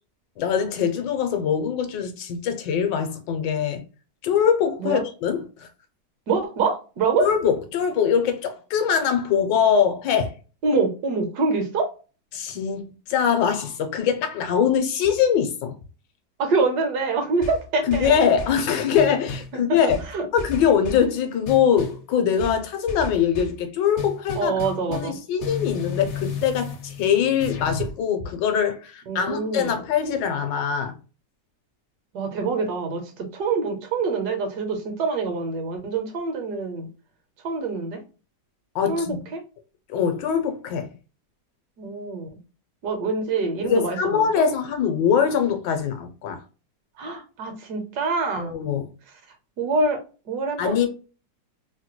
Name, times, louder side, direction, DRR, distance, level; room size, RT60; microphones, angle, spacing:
voice 1, 0.4-3.8 4.2-5.7 7.2-10.3 12.3-15.7 17.9-20.0 20.3-30.9 38.7-39.2 39.9-40.9 43.6-46.4 48.4-48.9 50.6-50.9, left 7 dB, 80° left, 1.3 m, -23 dB
voice 2, 6.3-7.3 10.6-11.9 16.4-18.2 19.5-19.8 20.1-20.3 24.4-25.2 29.1-29.8 32.1-36.9 37.4-38.0 38.9-39.4 41.8-42.3 42.8-44.5 47.0-48.5 49.6-50.0 50.3-50.9, right 4 dB, 70° right, 1.2 m, -25 dB
sound 1, 17.4-18.6 18.9-19.5 19.9-21.1 21.4-22.0 22.4-23.6 24.0-27.9, left 3 dB, 60° left, 0.7 m, -33 dB
3.2 x 2.2 x 2.9 m
omnidirectional pair, 2.0 m